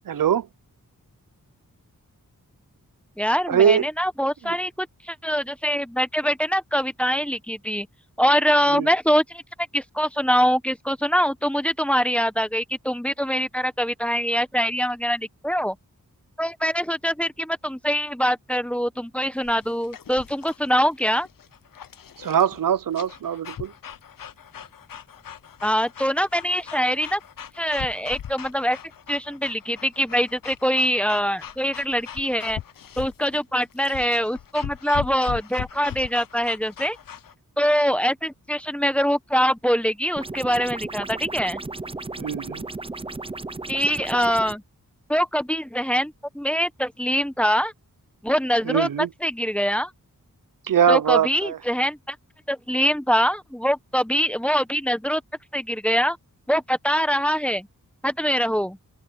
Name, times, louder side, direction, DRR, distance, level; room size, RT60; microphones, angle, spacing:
voice 1, 0.1-0.5 3.5-3.8 8.8-8.9 22.2-23.7 42.2-42.7 48.7-49.1 50.7-51.6, right 8 dB, 70° right, 0.6 m, -21 dB
voice 2, 3.2-7.9 8.2-9.4 9.7-15.8 16.4-21.3 25.6-27.2 27.6-28.8 29.1-32.6 33.0-37.0 37.6-41.6 43.7-44.6 45.1-47.7 48.2-48.9 49.2-49.9 50.9-52.2 52.5-55.2 55.5-56.2 56.5-57.7 58.0-58.8, equal, 5° left, 1.0 m, -23 dB
sound 1, 19.4-37.3, left 9 dB, 70° left, 0.7 m, -40 dB
sound 2, 40.2-44.6, right 3 dB, 15° right, 0.6 m, -34 dB
wide cardioid pair, 105°, 35 cm